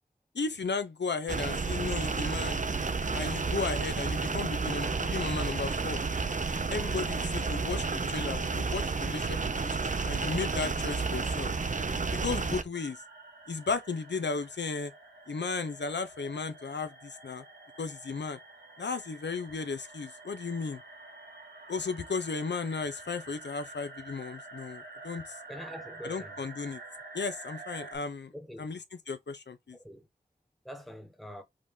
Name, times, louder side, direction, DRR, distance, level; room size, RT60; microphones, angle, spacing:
voice 1, 0.3-2.6 3.1-6.0 6.7-11.5 12.1-13.0 13.5-14.9 15.3-17.4 17.8-18.4 18.8-20.8 21.7-25.2 26.0-26.8 27.1-28.3 28.6-29.8, left 4 dB, 80° left, 0.6 m, -35 dB
sound 1, 1.3-12.6, right 4 dB, 45° right, 0.6 m, -31 dB
sound 2, 12.7-28.0, right 2 dB, 70° right, 1.5 m, -48 dB
voice 2, 25.5-26.4 28.3-28.7 29.8-30.0 30.6-31.4, equal, ahead, 1.1 m, -44 dB
5.0 x 2.7 x 3.6 m
wide cardioid pair, 60°, 18 cm